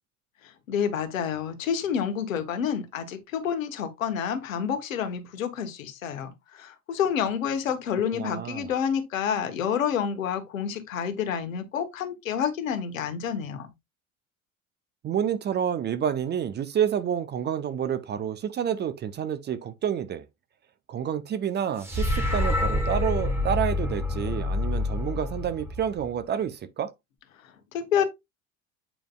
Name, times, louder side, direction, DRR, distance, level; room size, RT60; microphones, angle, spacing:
voice 1, 0.4-13.7 27.4-28.0, left 8 dB, 65° left, 1.4 m, -29 dB
voice 2, 8.1-8.7 15.0-20.2 20.9-26.9, right 9 dB, 25° right, 0.7 m, -29 dB
sound 1, 21.8-26.2, left 2 dB, 5° right, 1.8 m, -27 dB
8.6 x 5.1 x 2.4 m
figure-of-eight pair, 70°, 42 cm